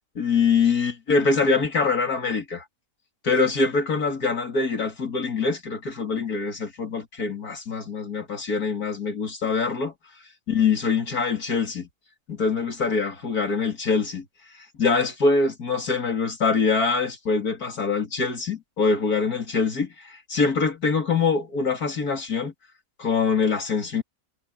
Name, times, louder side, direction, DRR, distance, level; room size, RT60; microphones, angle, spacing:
voice 1, 0.2-2.6 3.2-9.9 10.5-11.9 12.3-14.2 14.6-22.5 23.0-24.0, left 4 dB, 75° left, 3.4 m, -24 dB
omnidirectional pair, 1.6 m